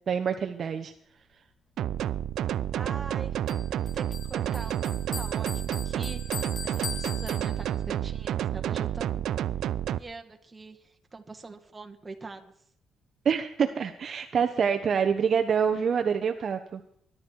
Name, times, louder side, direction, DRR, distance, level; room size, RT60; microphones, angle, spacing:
voice 1, 0.1-0.9 13.2-16.8, right 7 dB, 50° right, 6 dB, 1.2 m, -26 dB
sound 1, 1.8-10.0, right 11 dB, 75° right, 0.5 m, -30 dB
voice 2, 2.7-3.4 3.7-9.2 9.9-12.5, right 3 dB, 25° right, 5 dB, 2.2 m, -43 dB
Bell, 3.5-8.0, left 5 dB, 45° left, 2.4 m, -41 dB
20.5 x 11.5 x 4.8 m, 0.66 s
cardioid pair, 90°, 0 cm